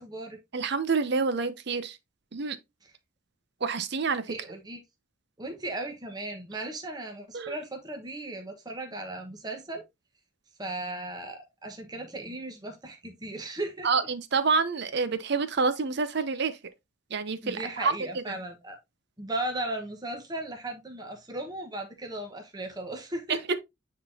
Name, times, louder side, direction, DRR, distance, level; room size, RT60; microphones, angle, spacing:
voice 1, 0.0-0.4 2.8-2.9 4.3-4.8 5.4-9.8 10.6-13.9 14.9-15.0 17.4-18.8 19.2-23.5, right 2 dB, 20° right, 1.2 m, -36 dB
voice 2, 0.5-2.0 2.3-2.6 3.6-4.2 7.3-7.5 13.8-16.6 17.1-17.9 18.3-18.4 23.5-23.6, right 4 dB, 60° right, 0.7 m, -27 dB
9.2 x 3.8 x 2.7 m
head